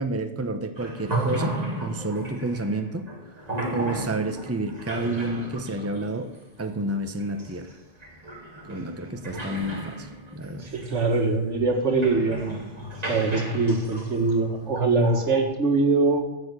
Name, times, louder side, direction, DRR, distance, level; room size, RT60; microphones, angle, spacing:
voice 1, 0.0-1.6 1.8-3.0 3.7-6.3 6.6-7.7 8.6-10.1 10.3-10.7, right 2 dB, 15° right, 7 dB, 0.9 m, -29 dB
sound 1, 0.8-15.4, right 1 dB, 35° right, 2.5 m, -35 dB
voice 2, 10.6-12.5 13.1-16.2, right 3 dB, 80° right, 5 dB, 2.1 m, -23 dB
14.5 x 7.3 x 8.3 m, 0.99 s
omnidirectional pair, 1.2 m